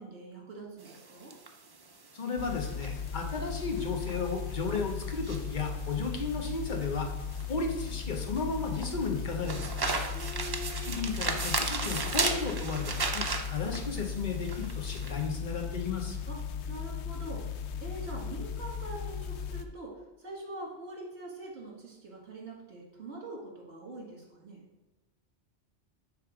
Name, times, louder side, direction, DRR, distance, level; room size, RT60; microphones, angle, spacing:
voice 1, 0.0-1.3 10.1-10.9 16.3-17.5 17.8-24.6, right 2 dB, 65° right, -2 dB, 1.9 m, -44 dB
sound 1, 0.8-15.2, right 3 dB, 35° right, 0.4 m, -36 dB
voice 2, 2.1-7.1 7.5-9.9 10.8-13.2 13.5-16.2, left 4 dB, 45° left, 3 dB, 1.0 m, -34 dB
sound 2, 2.4-19.6, left 7 dB, 80° left, 0.9 m, -37 dB
8.3 x 3.3 x 4.9 m, 1.1 s
omnidirectional pair, 1.1 m